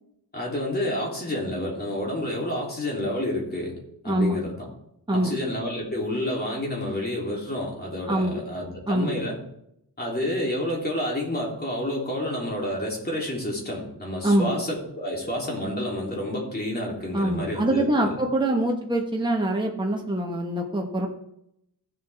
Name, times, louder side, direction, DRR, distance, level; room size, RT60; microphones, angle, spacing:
voice 1, 0.3-3.7 4.0-4.7 5.1-9.4 10.0-18.2 18.4-18.5, left 1 dB, 25° left, -3 dB, 3.4 m, -29 dB
voice 2, 4.0-4.4 5.1-5.4 8.1-8.4 8.9-9.2 14.2-14.5 17.1-21.1, right 1 dB, 10° right, 0 dB, 1.4 m, -24 dB
15.5 x 7.5 x 3.6 m, 0.77 s
wide cardioid pair, 130°, 41 cm